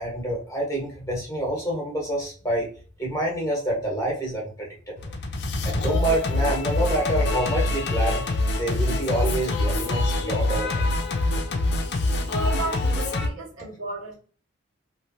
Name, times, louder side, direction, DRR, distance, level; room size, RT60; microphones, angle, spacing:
voice 1, 0.0-2.7 3.0-4.7 5.0-5.1 5.6-8.3 8.6-10.9, right 1 dB, 15° left, 1.1 m, -27 dB
Singing, 5.0-13.3, left 2 dB, 55° left, 0.5 m, -25 dB
voice 2, 12.3-14.1, right 2 dB, 70° right, 1.2 m, -33 dB
3.1 x 2.5 x 2.6 m
head